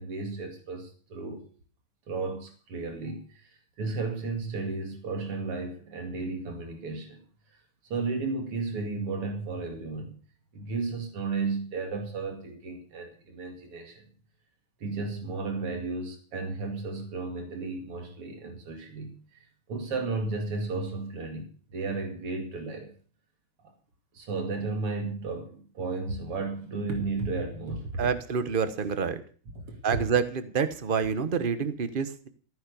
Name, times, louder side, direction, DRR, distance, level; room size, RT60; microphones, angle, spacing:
voice 1, 0.0-1.4 2.1-7.2 7.9-10.2 10.5-14.1 14.8-19.4 19.7-22.9 24.1-28.0 29.6-29.8, right 3 dB, 85° right, 4 dB, 3.3 m, -34 dB
voice 2, 28.0-29.2 29.8-32.3, right 6 dB, 35° right, 12 dB, 1.0 m, -27 dB
15.0 x 9.6 x 6.9 m, 0.41 s
omnidirectional pair, 2.4 m